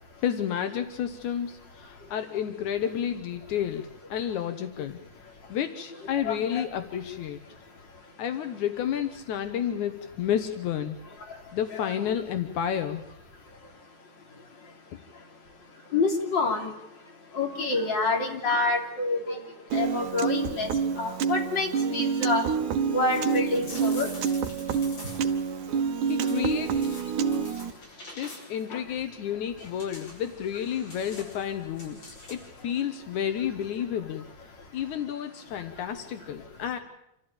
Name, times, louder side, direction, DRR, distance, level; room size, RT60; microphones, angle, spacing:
voice 1, 0.2-5.0 5.5-7.4 8.2-11.0 11.5-13.0 26.1-27.0 27.5-27.6 28.2-34.3 34.7-36.8, left 9 dB, 80° left, 8 dB, 2.6 m, -31 dB
voice 2, 6.3-6.7 11.7-11.9 15.9-16.7 17.3-19.4 19.7-20.7 21.0-22.4 22.9-24.1 28.7-28.8, left 3 dB, 35° left, 2 dB, 3.8 m, -27 dB
Piano, 19.7-27.7, right 6 dB, 80° right, 2.5 m, -28 dB
sound 1, 23.1-25.4 26.1-28.7 29.6-32.6, left 1 dB, 55° left, 8.7 m, -47 dB
27.5 x 14.5 x 8.8 m, 0.80 s
omnidirectional pair, 3.4 m